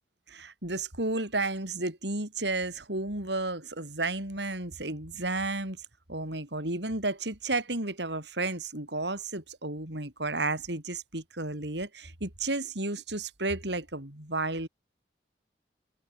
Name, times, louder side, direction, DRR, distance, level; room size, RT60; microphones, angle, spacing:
voice 1, 0.3-5.8 6.1-14.7, right 2 dB, 85° right, 5.9 m, -32 dB
head